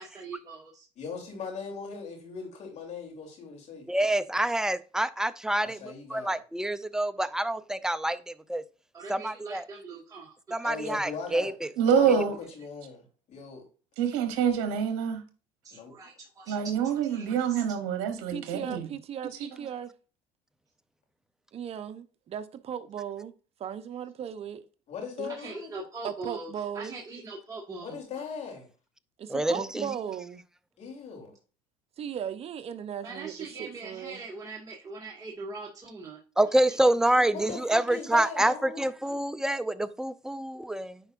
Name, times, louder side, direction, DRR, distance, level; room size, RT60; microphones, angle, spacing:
voice 1, 0.0-0.8 8.9-10.3 15.6-16.5 17.1-17.3 25.4-26.5 26.7-28.0 33.0-36.2, right 3 dB, 25° right, 1.9 m, -41 dB
voice 2, 0.9-3.9 5.6-6.4 10.6-11.5 11.9-13.6 15.7-15.9 24.9-25.7 27.8-28.7 30.8-31.3 37.1-38.9, left 5 dB, 55° left, 3.2 m, -39 dB
voice 3, 3.9-8.6 9.1-9.7 10.5-11.7 29.3-29.9 36.4-41.0, right 1 dB, 5° right, 0.5 m, -27 dB
voice 4, 11.8-12.4 14.0-15.2 16.5-18.9 19.4-19.5, right 7 dB, 80° right, 1.0 m, -26 dB
voice 5, 18.3-19.9 21.5-23.3 23.6-24.7 25.2-25.3 26.0-26.9 29.2-30.4 32.0-34.2, right 8 dB, 45° right, 0.8 m, -37 dB
9.6 x 4.6 x 2.5 m
supercardioid pair, 90°, 14 cm